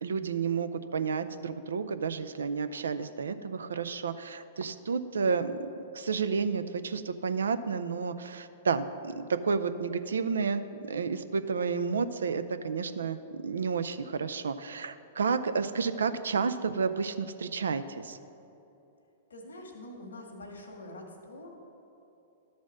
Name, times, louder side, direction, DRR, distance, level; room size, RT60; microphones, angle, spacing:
voice 1, 0.0-5.7 5.9-18.2, right 5 dB, 80° right, 11 dB, 0.4 m, -31 dB
voice 2, 19.3-21.6, left 1 dB, 85° left, 2 dB, 1.4 m, -45 dB
12.0 x 4.1 x 6.1 m, 2.8 s
hypercardioid pair, 115°, 0 cm